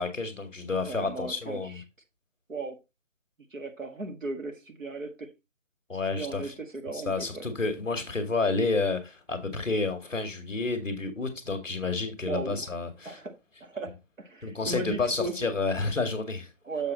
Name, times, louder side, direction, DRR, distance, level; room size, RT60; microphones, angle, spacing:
voice 1, 0.0-1.8 5.9-6.5 6.9-13.2 14.4-16.5, left 3 dB, ahead, 1.1 m, -30 dB
voice 2, 0.8-1.8 2.5-2.8 3.5-5.3 6.0-7.4 12.2-12.7 13.1-13.3 13.6-15.5 16.6-16.9, right 3 dB, 80° right, 1.9 m, -36 dB
6.6 x 6.1 x 4.0 m
figure-of-eight pair, 160°, 39 cm